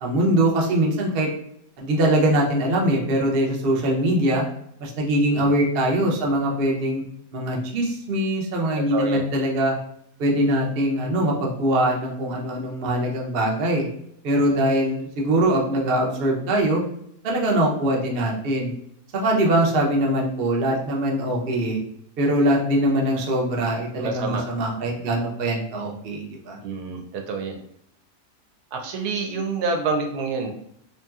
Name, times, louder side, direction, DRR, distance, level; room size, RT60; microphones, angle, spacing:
voice 1, 0.0-1.3 1.8-4.4 4.8-7.0 7.3-9.8 10.2-13.9 14.2-16.8 17.2-18.7 19.1-21.8 22.2-26.6, right 1 dB, 60° right, -2 dB, 0.6 m, -22 dB
voice 2, 8.9-9.3 24.0-24.4 24.8-25.0 26.6-27.6 28.7-30.5, right 4 dB, 75° right, 3 dB, 1.1 m, -27 dB
2.9 x 2.8 x 2.3 m, 0.71 s
omnidirectional pair, 1.7 m